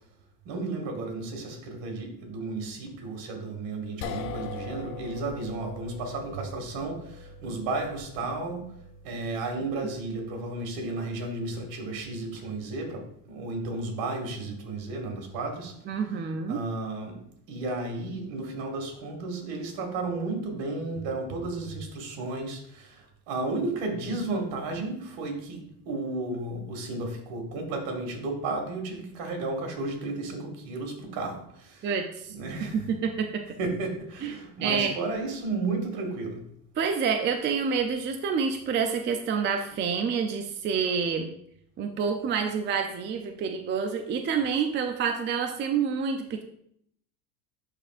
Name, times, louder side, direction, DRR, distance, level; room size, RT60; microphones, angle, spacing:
voice 1, 0.4-8.7 9.0-15.7 16.5-17.2 17.5-31.9 32.3-32.8 33.6-36.4, right 3 dB, 65° right, 2 dB, 2.3 m, -33 dB
sound 1, 4.0-16.3, left 4 dB, 85° left, 0.8 m, -44 dB
voice 2, 15.9-16.6 31.8-32.3 32.6-33.4 34.2-35.0 36.8-41.3 41.8-46.4, right 6 dB, 25° right, 5 dB, 0.5 m, -28 dB
11.5 x 4.3 x 2.5 m, 0.70 s
supercardioid pair, 110°, 47 cm